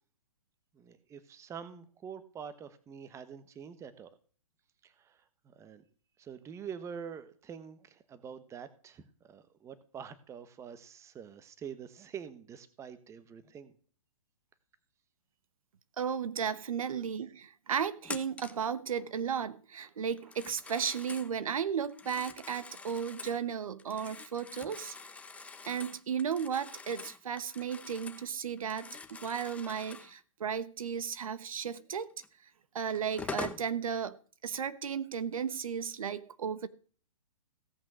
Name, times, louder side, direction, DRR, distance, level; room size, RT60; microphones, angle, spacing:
voice 1, 0.7-4.1 4.8-5.8 6.2-13.7, right 7 dB, 15° right, 1.2 m, -46 dB
voice 2, 16.0-24.9 25.7-32.1 32.7-34.1 34.4-36.7, right 7 dB, 75° right, 1.2 m, -34 dB
Telephone, 18.0-18.7 20.2-21.3 21.8-23.4 23.8-28.3 28.6-30.1 32.2-32.3 32.9-33.7, left 4 dB, 5° left, 1.0 m, -45 dB
17.0 x 6.1 x 6.2 m
hypercardioid pair, 130°, 18 cm